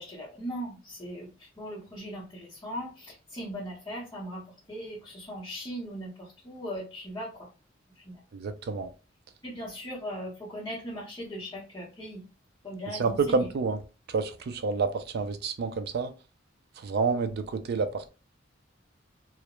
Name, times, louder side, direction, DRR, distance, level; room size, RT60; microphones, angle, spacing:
voice 1, 0.0-7.5 7.9-8.2 9.4-12.3 12.6-13.5, equal, 20° left, 0.7 m, -39 dB
voice 2, 8.3-8.9 12.9-13.8 14.1-16.1 16.8-18.1, right 4 dB, 55° right, 0.4 m, -29 dB
2.4 x 2.1 x 2.9 m
head